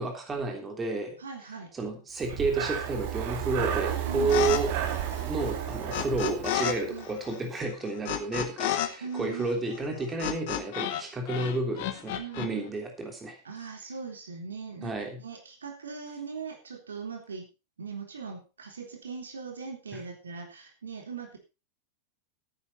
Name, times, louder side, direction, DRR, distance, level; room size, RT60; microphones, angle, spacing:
voice 1, 0.0-1.2 1.7-4.7 5.2-13.4 14.8-15.2, right 3 dB, 20° right, 3 dB, 3.4 m, -31 dB
voice 2, 1.2-1.7 4.1-4.4 6.9-7.1 9.0-9.5 12.2-12.7 13.4-17.5 17.8-21.4, right 5 dB, 70° right, 3 dB, 3.5 m, -40 dB
Breathing, 2.2-7.1, right 10 dB, 45° right, 2.4 m, -32 dB
sound 1, 4.3-4.6 4.9-6.7 7.0-11.0 11.3-12.5, left 11 dB, 50° left, 1.8 m, -32 dB
13.5 x 9.7 x 4.2 m, 0.29 s
figure-of-eight pair, 90°, 0 cm